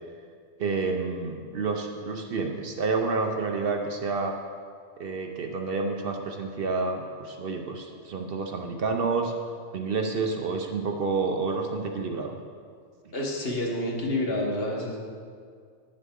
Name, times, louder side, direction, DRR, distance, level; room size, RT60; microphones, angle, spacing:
voice 1, 0.6-4.3 5.0-9.3 9.7-12.3, right 4 dB, 60° right, 3 dB, 0.8 m, -29 dB
voice 2, 13.1-15.0, left 1 dB, 55° left, -1 dB, 1.3 m, -28 dB
9.4 x 7.6 x 3.6 m, 2.1 s
omnidirectional pair, 1.2 m